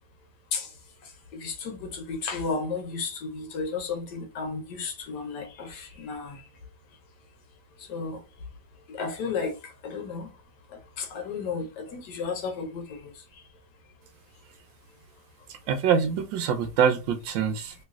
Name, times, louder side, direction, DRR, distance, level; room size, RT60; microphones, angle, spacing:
voice 1, 1.3-6.4 7.9-8.2 8.9-10.3 11.0-13.1, left 4 dB, 70° left, 1.3 m, -33 dB
voice 2, 15.7-17.7, right 7 dB, 90° right, 1.3 m, -24 dB
3.1 x 3.1 x 2.3 m
omnidirectional pair, 2.0 m